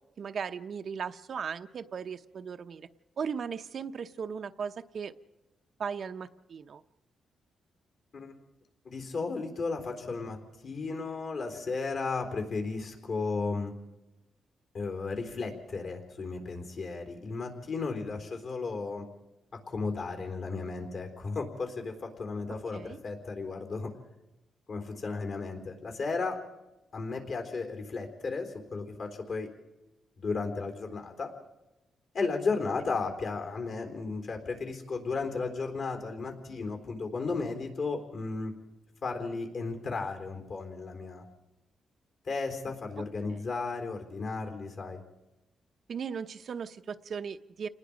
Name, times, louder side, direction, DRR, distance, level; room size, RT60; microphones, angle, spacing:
voice 1, 0.2-2.9 3.2-5.1 5.8-6.8 22.7-23.0 43.3-43.4 45.9-47.7, right 6 dB, 55° right, 9 dB, 0.8 m, -37 dB
voice 2, 8.8-13.7 14.7-19.1 19.5-23.9 24.7-26.4 26.9-29.5 30.2-31.3 32.1-38.5 39.0-41.2 42.2-45.0, left 4 dB, 55° left, 4 dB, 4.0 m, -34 dB
28.5 x 19.5 x 5.1 m, 1.0 s
cardioid pair, 120°, 0 cm